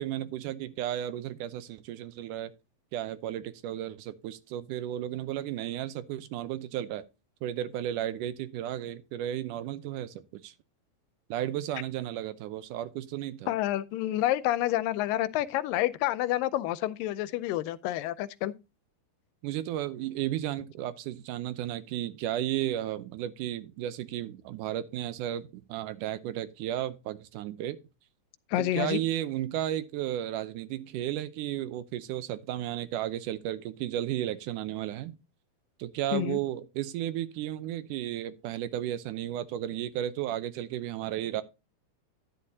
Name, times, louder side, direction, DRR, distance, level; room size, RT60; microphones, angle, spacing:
voice 1, 0.0-2.5 2.9-7.1 7.4-10.5 11.3-13.5 19.4-27.8 28.6-35.2 35.8-41.4, right 12 dB, 75° right, 2.2 m, -34 dB
voice 2, 13.5-18.5 28.5-29.0 36.1-36.4, left 14 dB, 85° left, 2.3 m, -28 dB
11.0 x 10.0 x 2.7 m
omnidirectional pair, 3.9 m